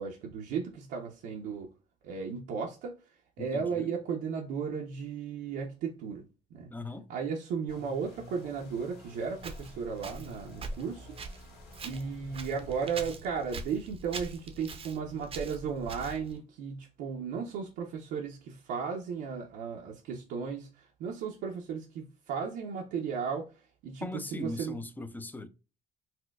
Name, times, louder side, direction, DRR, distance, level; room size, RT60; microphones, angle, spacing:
voice 1, 0.0-1.7 2.0-2.9 3.4-6.2 6.5-6.7 7.1-11.1 11.8-23.5 23.8-24.8, right 6 dB, 80° right, 0.7 m, -35 dB
voice 2, 3.4-3.9 6.7-7.1 24.0-25.5, left 2 dB, 10° left, 0.3 m, -39 dB
sound 1, 7.7-13.2, left 3 dB, 85° left, 1.7 m, -51 dB
Walk footsteps, 9.4-16.4, right 3 dB, 35° right, 0.6 m, -43 dB
4.2 x 2.2 x 2.2 m
cardioid pair, 110°, 17 cm